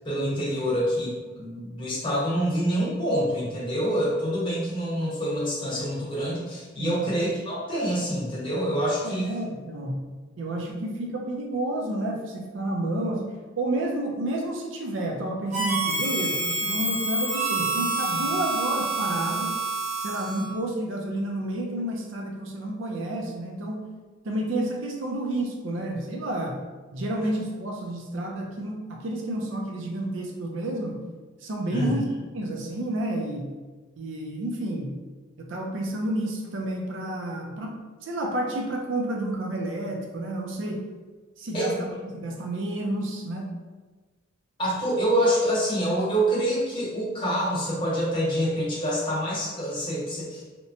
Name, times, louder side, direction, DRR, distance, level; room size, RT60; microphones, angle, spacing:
voice 1, 0.0-9.3 31.7-32.0 41.5-41.7 44.6-50.4, equal, 25° left, -8 dB, 0.9 m, -26 dB
voice 2, 6.8-7.1 9.0-10.1 10.4-19.5 20.0-23.8 24.2-26.6 26.9-31.0 31.4-32.1 32.3-33.5 34.0-34.9 35.4-40.8 41.4-43.5, right 1 dB, 65° right, 0 dB, 0.5 m, -30 dB
Harmonica, 15.5-20.6, right 3 dB, 35° right, 0.8 m, -27 dB
2.9 x 2.1 x 2.6 m, 1.3 s
head